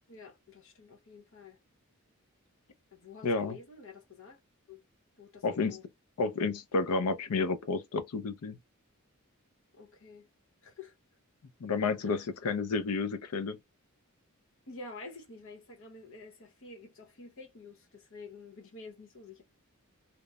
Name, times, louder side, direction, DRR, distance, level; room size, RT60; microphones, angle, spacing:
voice 1, 0.1-1.6 2.9-4.4 4.7-4.8 5.2-5.9 9.7-10.3 10.6-10.9 12.0-12.2 14.7-19.4, left 3 dB, 60° left, 0.8 m, -49 dB
voice 2, 3.2-3.6 5.4-5.8 6.2-8.6 11.6-13.6, left 4 dB, 85° left, 0.5 m, -31 dB
2.9 x 2.0 x 2.3 m
head